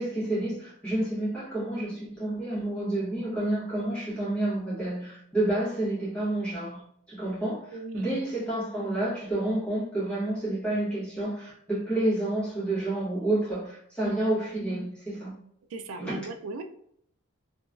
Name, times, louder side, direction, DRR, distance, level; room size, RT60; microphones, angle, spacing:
voice 1, 0.0-6.8 7.1-7.6 7.9-15.4 16.0-16.2, right 1 dB, 5° left, -9 dB, 1.2 m, -29 dB
voice 2, 7.7-8.2 14.0-14.2 15.7-16.6, right 3 dB, 65° right, 7 dB, 0.3 m, -38 dB
2.8 x 2.6 x 2.3 m, 0.68 s
head